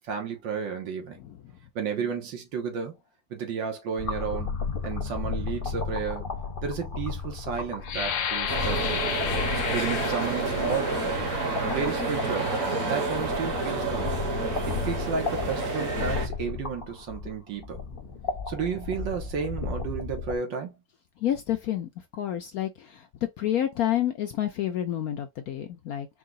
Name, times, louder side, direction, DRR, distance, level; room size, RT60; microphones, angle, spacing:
voice 1, 0.1-1.2 1.8-2.9 3.3-6.3 6.6-9.0 9.7-11.0 11.7-12.5 12.8-14.2 14.7-17.8 18.5-20.7, right 6 dB, 80° right, 1.9 m, -32 dB
sound 1, 4.0-20.4, left 5 dB, 40° left, 0.8 m, -34 dB
sound 2, 7.8-13.5 14.1-14.3 14.8-15.2, left 8 dB, 85° left, 1.5 m, -34 dB
sound 3, 8.5-16.3, right 3 dB, 45° right, 1.8 m, -29 dB
voice 2, 21.2-23.1 23.4-26.1, left 11 dB, 70° left, 0.9 m, -29 dB
4.7 x 2.3 x 3.7 m
omnidirectional pair, 2.0 m